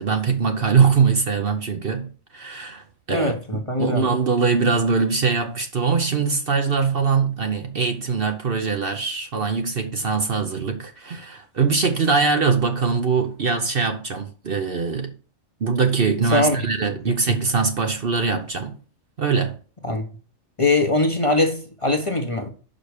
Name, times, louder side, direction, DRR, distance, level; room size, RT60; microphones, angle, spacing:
voice 1, 0.0-15.1 15.6-18.8 19.2-19.6, right 5 dB, 50° right, 0.9 m, -22 dB
voice 2, 3.1-4.1 16.3-16.6 19.8-20.0 20.6-22.5, left 2 dB, 25° left, 0.9 m, -21 dB
5.8 x 5.1 x 6.5 m
omnidirectional pair, 1.4 m